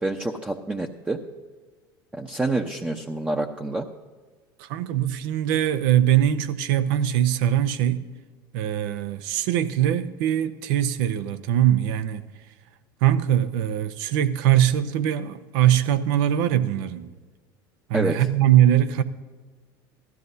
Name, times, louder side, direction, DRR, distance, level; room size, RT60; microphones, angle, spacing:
voice 1, 0.0-1.2 2.1-3.9 17.9-18.2, right 2 dB, 10° right, 0.8 m, -27 dB
voice 2, 4.6-8.0 8.5-12.3 13.0-17.1 17.9-19.0, right 11 dB, 70° right, 0.8 m, -22 dB
17.0 x 13.0 x 2.7 m
hypercardioid pair, 80°, 12 cm